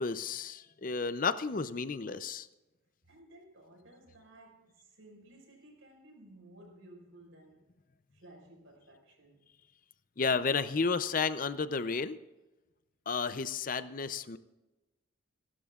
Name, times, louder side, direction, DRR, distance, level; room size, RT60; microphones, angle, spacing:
voice 1, 0.0-2.5 10.2-12.2 13.1-14.4, left 4 dB, 40° left, 13 dB, 0.5 m, -32 dB
voice 2, 3.0-7.7 8.1-9.5, right 1 dB, 80° right, 0 dB, 5.2 m, -56 dB
27.5 x 12.5 x 2.4 m, 1.1 s
head